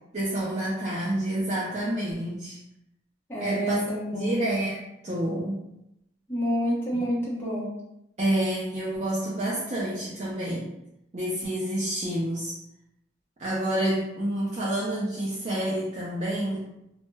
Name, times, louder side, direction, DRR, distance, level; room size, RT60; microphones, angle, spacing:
voice 1, 0.1-2.6 3.4-5.6 6.9-7.1 8.2-10.7 11.1-12.6 13.4-16.7, right 1 dB, 40° right, -7 dB, 0.4 m, -28 dB
voice 2, 3.3-4.4 6.3-7.7, equal, 10° left, -7 dB, 0.8 m, -28 dB
2.1 x 2.0 x 3.2 m, 0.84 s
head